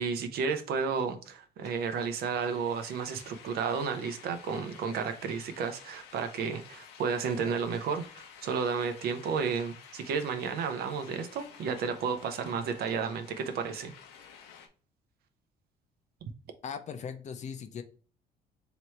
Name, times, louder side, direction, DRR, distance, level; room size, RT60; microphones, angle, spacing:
voice 1, 0.0-13.9, right 6 dB, 65° right, 0.7 m, -32 dB
sound 1, 1.6-14.7, left 7 dB, 80° left, 0.8 m, -52 dB
voice 2, 16.6-17.8, left 7 dB, 45° left, 0.6 m, -39 dB
3.2 x 2.9 x 4.4 m
cardioid pair, 110°, 17 cm